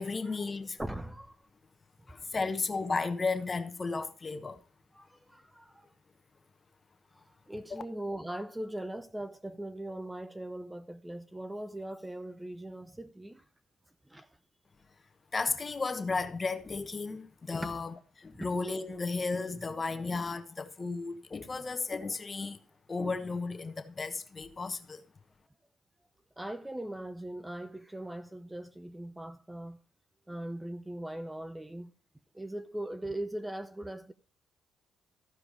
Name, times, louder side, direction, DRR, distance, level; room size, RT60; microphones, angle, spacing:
voice 1, 0.0-0.8 2.1-4.6 7.7-7.8 15.3-22.6 22.9-25.0, left 4 dB, 30° left, 1.1 m, -34 dB
voice 2, 0.8-1.4 2.3-2.4 4.9-5.9 7.5-13.4 14.1-14.3 17.6-17.7 18.4-18.5 19.6-20.0 26.4-29.8 30.3-31.9 32.3-34.1, right 1 dB, 10° right, 0.5 m, -40 dB
14.0 x 4.9 x 4.9 m
cardioid pair, 90°, 0 cm